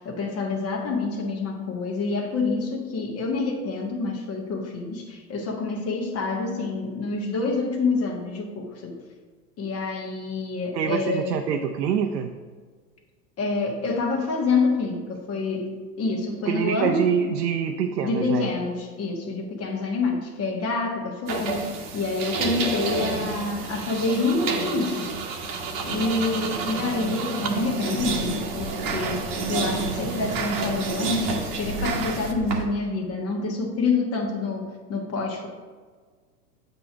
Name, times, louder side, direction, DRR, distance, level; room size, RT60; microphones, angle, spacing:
voice 1, 0.0-9.0 9.6-11.4 13.4-17.0 18.0-25.1 25.8-35.5, left 3 dB, 30° left, 1 dB, 1.3 m, -27 dB
voice 2, 10.7-12.3 16.5-18.5, right 7 dB, 80° right, 5 dB, 0.7 m, -25 dB
sound 1, 21.3-32.7, right 4 dB, 40° right, 1.1 m, -29 dB
7.7 x 3.0 x 5.7 m, 1.5 s
hypercardioid pair, 105°, 49 cm